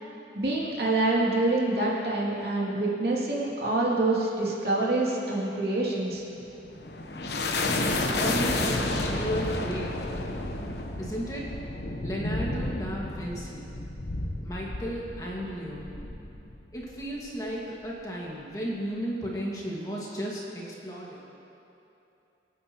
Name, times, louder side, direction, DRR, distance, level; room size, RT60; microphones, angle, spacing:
voice 1, 0.3-6.2, right 2 dB, 60° right, -5 dB, 2.6 m, -26 dB
sound 1, 6.4-17.2, left 2 dB, 65° left, 1.0 m, -31 dB
voice 2, 7.8-10.0 11.0-11.4 12.0-13.7 14.4-15.9 16.7-21.2, equal, 20° left, -5 dB, 1.8 m, -34 dB
25.0 x 9.2 x 3.0 m, 2.9 s
head